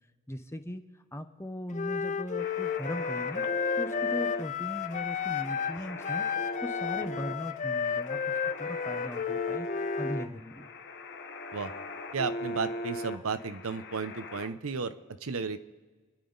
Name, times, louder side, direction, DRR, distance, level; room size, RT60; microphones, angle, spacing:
voice 1, 0.3-0.8 1.1-3.4 3.8-6.3 6.6-8.2 8.6-10.7, equal, 10° left, 8 dB, 0.8 m, -38 dB
Wind instrument woodwind instrument, 1.7-5.8 6.0-10.2, left 7 dB, 35° left, 0.5 m, -32 dB
sound 1, 2.4-14.5, left 1 dB, 50° left, 1.0 m, -39 dB
voice 2, 12.1-15.6, right 5 dB, 65° right, 11 dB, 0.8 m, -34 dB
29.0 x 10.5 x 4.0 m, 1.4 s
head